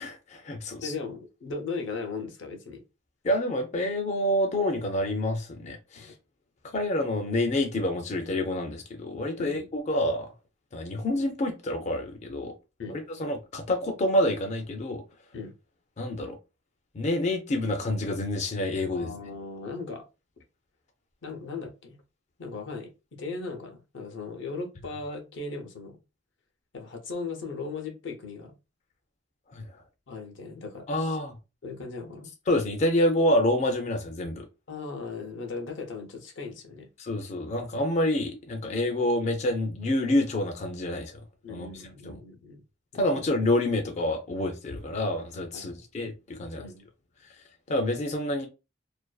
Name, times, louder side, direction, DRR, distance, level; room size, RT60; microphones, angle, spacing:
voice 1, 0.0-0.9 3.2-6.1 6.7-10.3 10.7-12.5 12.9-15.0 16.0-16.4 16.9-19.1 29.5-29.6 30.9-31.4 32.5-34.4 37.0-41.2 41.5-41.7 42.1-42.2 43.0-46.6 47.7-48.5, left 1 dB, 40° left, 0.4 m, -27 dB
voice 2, 0.8-2.8 6.0-6.1 9.4-9.7 12.8-13.0 15.3-15.5 18.9-20.0 20.4-20.5 21.2-22.0 22.4-26.0 26.7-28.5 30.1-31.2 31.6-32.3 34.7-36.9 41.4-42.6 42.9-43.3 45.5-45.9 46.5-46.9, left 4 dB, 80° left, 0.6 m, -38 dB
2.5 x 2.2 x 2.2 m
head